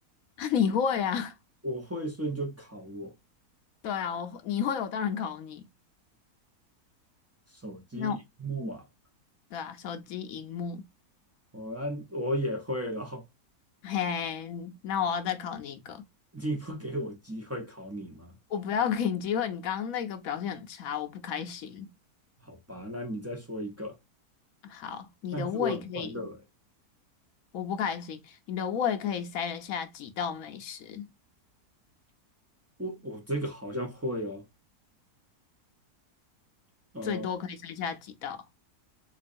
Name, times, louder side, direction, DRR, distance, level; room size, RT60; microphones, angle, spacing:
voice 1, 0.4-1.3 3.8-5.7 8.0-8.2 9.5-10.8 13.8-16.0 18.5-21.9 24.6-26.3 27.5-31.1 37.0-38.4, left 7 dB, 70° left, 1.0 m, -32 dB
voice 2, 1.6-3.1 7.5-8.9 11.5-13.2 16.3-18.3 22.4-23.9 25.3-26.4 32.8-34.5 36.9-37.3, equal, 20° right, 0.3 m, -35 dB
3.9 x 3.0 x 2.5 m
omnidirectional pair, 1.6 m